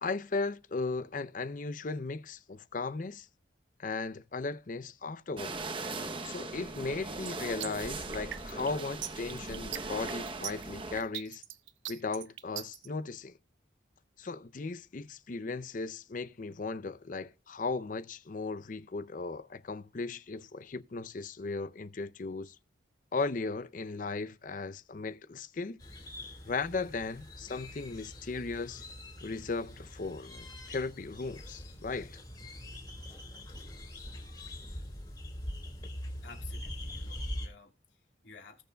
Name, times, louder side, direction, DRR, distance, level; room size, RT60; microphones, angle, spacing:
voice 1, 0.0-3.3 3.8-5.6 6.2-11.4 11.9-13.3 14.2-22.6 23.1-25.8 26.5-28.8 29.2-32.2, left 3 dB, 45° left, 0.5 m, -36 dB
sound 1, 5.4-11.0, right 3 dB, 30° right, 0.8 m, -39 dB
sound 2, 7.3-12.9, right 12 dB, 80° right, 0.7 m, -40 dB
sound 3, 25.8-37.5, left 1 dB, 25° left, 3.1 m, -43 dB
voice 2, 36.2-38.6, left 5 dB, 75° left, 3.0 m, -53 dB
19.5 x 6.9 x 2.3 m
head